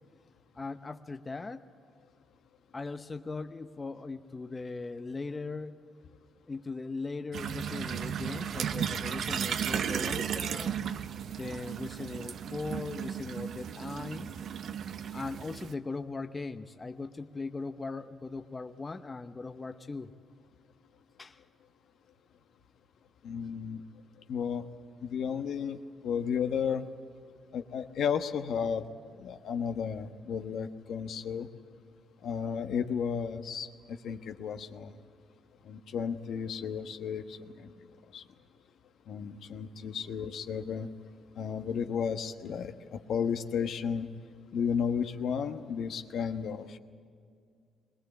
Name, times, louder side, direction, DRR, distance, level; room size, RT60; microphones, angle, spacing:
voice 1, 0.5-1.6 2.7-5.8 6.5-10.8 11.4-14.3 15.1-20.1 21.2-21.4, left 3 dB, 25° left, 8 dB, 0.8 m, -39 dB
sound 1, 7.3-15.7, right 8 dB, 65° right, 0.8 m, -35 dB
voice 2, 23.2-23.8 24.3-24.6 25.1-26.9 27.5-28.8 29.2-31.5 32.2-34.9 35.7-37.7 38.1-38.2 39.1-40.9 41.4-42.7 43.1-44.1 44.5-46.8, left 7 dB, 70° left, 7 dB, 1.2 m, -33 dB
22.0 x 19.5 x 8.5 m, 2.3 s
cardioid pair, 90°, 0 cm